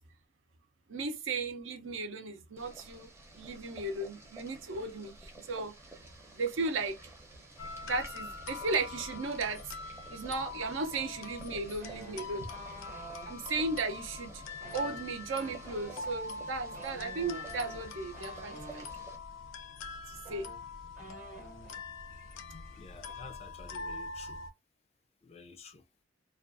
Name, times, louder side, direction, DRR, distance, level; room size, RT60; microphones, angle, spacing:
voice 1, 0.9-5.7 6.4-7.0 7.8-9.7 10.1-12.5 13.3-14.4 14.7-18.9 20.1-20.5, right 3 dB, 75° right, 0.6 m, -35 dB
Boiling, 2.6-19.2, right 2 dB, 15° right, 0.6 m, -52 dB
sound 1, 7.6-24.5, left 4 dB, 85° left, 0.5 m, -44 dB
sound 2, 11.8-13.3 14.5-18.9 19.8-19.9 20.2-21.8 22.1-22.4 22.6-23.1, right 3 dB, 40° right, 0.8 m, -49 dB
voice 2, 22.7-24.4 25.2-25.8, left 4 dB, 30° left, 0.3 m, -51 dB
2.4 x 2.3 x 2.4 m
head